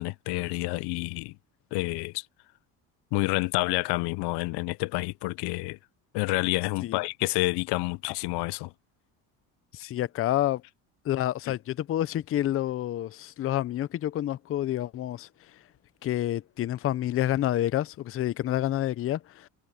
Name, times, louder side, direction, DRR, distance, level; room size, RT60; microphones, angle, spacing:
voice 1, 0.0-1.3 1.7-2.3 3.1-5.8 6.1-8.7 11.5-11.6, left 23 dB, 80° left, 0.6 m, -29 dB
voice 2, 9.7-10.6 11.0-15.3 16.0-19.5, left 13 dB, 35° left, 0.5 m, -28 dB
cardioid pair, 125°, 40 cm